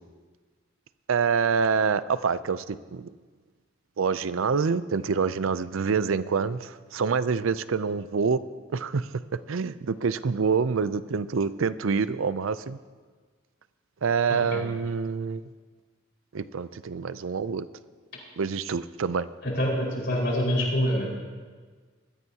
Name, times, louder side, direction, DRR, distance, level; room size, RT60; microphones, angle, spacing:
voice 1, 1.1-3.1 4.0-8.4 8.7-9.1 9.5-12.8 14.0-15.4 16.3-17.7 18.4-19.3, right 5 dB, 80° right, 15 dB, 0.5 m, -26 dB
voice 2, 14.3-14.6 19.4-21.1, equal, 60° left, -4 dB, 5.0 m, -26 dB
21.5 x 14.0 x 2.9 m, 1.5 s
head